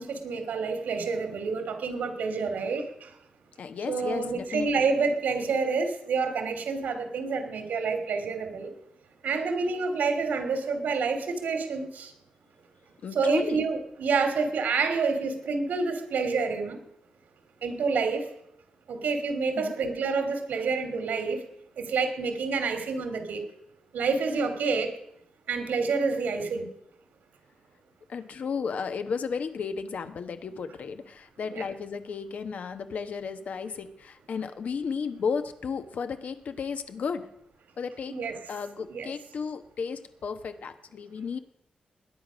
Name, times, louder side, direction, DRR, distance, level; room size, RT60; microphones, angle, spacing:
voice 1, 0.0-3.1 3.9-8.7 9.2-12.1 13.1-16.8 17.6-18.3 18.9-21.4 21.8-23.4 23.9-24.9 25.5-26.7 31.5-31.6 38.1-38.3 38.9-39.1, right 4 dB, 90° right, 7 dB, 2.9 m, -28 dB
voice 2, 3.6-4.8 13.0-13.6 19.5-19.7 28.1-37.3 37.8-38.2 38.5-41.4, left 5 dB, 60° left, 10 dB, 1.2 m, -34 dB
21.0 x 10.5 x 6.3 m, 0.79 s
wide cardioid pair, 155°, 3 cm